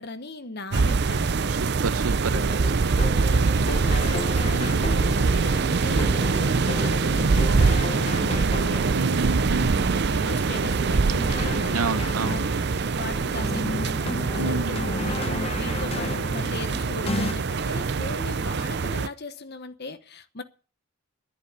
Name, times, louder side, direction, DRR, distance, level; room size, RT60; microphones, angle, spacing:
voice 1, 0.0-1.4 3.5-5.0 5.3-8.8 9.5-11.7 12.2-12.4 13.0-15.2 15.5-20.4, left 2 dB, 50° left, 1.1 m, -37 dB
sound 1, 0.7-19.1, right 4 dB, 50° right, 0.5 m, -24 dB
voice 2, 1.5-2.9 4.5-4.8 8.9-9.8 11.7-12.4 14.4-14.8, right 3 dB, 80° right, 0.8 m, -29 dB
sound 2, 2.3-17.3, left 2 dB, 25° left, 0.7 m, -35 dB
11.5 x 10.5 x 6.6 m
head